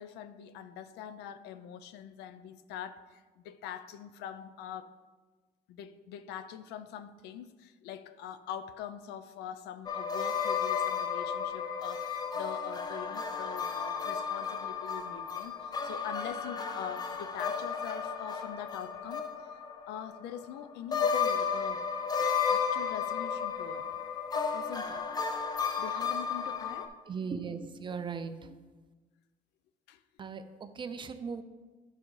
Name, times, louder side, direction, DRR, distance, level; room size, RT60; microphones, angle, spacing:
voice 1, 0.0-4.9 5.7-19.2 19.9-21.8 22.2-23.9 24.5-25.0 25.8-26.9 29.9-30.0, left 9 dB, 85° left, 0.4 m, -43 dB
sound 1, 9.9-20.6 20.9-26.9, left 6 dB, 25° left, 0.6 m, -33 dB
voice 2, 27.1-28.6 30.2-31.4, right 5 dB, 30° right, 0.5 m, -38 dB
10.0 x 4.7 x 3.2 m
cardioid pair, 110°, 17 cm